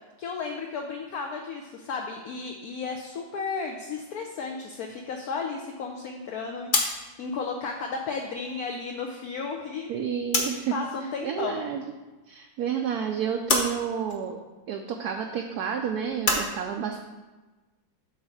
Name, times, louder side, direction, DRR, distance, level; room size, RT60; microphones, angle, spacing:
voice 1, 0.2-9.9 10.7-11.6, left 4 dB, 65° left, 2 dB, 1.0 m, -34 dB
Circuit Breaker handling noise mechanical rattle, 5.8-10.8 11.1-12.1 12.5-16.5, left 3 dB, 40° left, 0.7 m, -31 dB
voice 2, 9.9-10.7 11.2-11.8 12.3-14.4 14.7-17.0, right 8 dB, 70° right, 3 dB, 0.9 m, -30 dB
8.0 x 3.3 x 6.2 m, 1.2 s
omnidirectional pair, 2.1 m